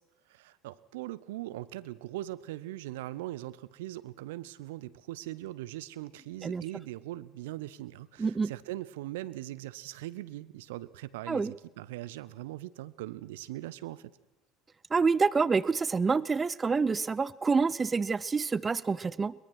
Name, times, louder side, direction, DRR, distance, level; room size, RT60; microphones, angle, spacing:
voice 1, 0.3-14.1, right 15 dB, 70° right, 17 dB, 0.8 m, -40 dB
voice 2, 8.2-8.5 11.3-11.5 14.9-19.3, right 4 dB, 25° right, 20 dB, 0.7 m, -27 dB
22.5 x 22.0 x 6.1 m, 1.0 s
figure-of-eight pair, 65°, 0 cm